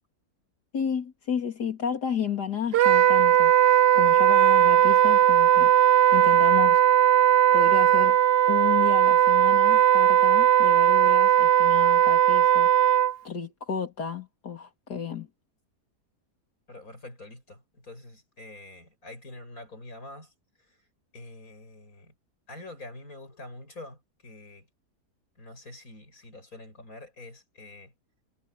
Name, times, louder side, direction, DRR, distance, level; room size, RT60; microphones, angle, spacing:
voice 1, 0.7-3.5 3.9-5.7 6.1-6.8 7.5-8.2 8.5-13.0 13.2-15.3, left 7 dB, 85° left, 3.4 m, -32 dB
Wind instrument woodwind instrument, 2.7-13.1, right 11 dB, 75° right, 0.5 m, -18 dB
voice 2, 16.7-20.3 21.1-22.1 22.5-24.7 25.4-27.9, left 2 dB, 60° left, 7.8 m, -45 dB
omnidirectional pair, 1.7 m